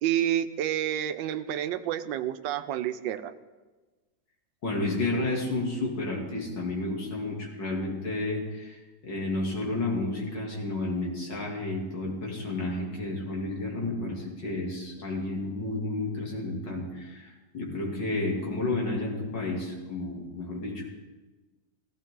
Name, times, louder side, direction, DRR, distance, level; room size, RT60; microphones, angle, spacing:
voice 1, 0.0-3.3, right 11 dB, 85° right, 12 dB, 1.4 m, -29 dB
voice 2, 4.6-20.8, left 2 dB, 75° left, -2 dB, 3.2 m, -31 dB
16.5 x 16.0 x 3.8 m, 1.2 s
omnidirectional pair, 1.9 m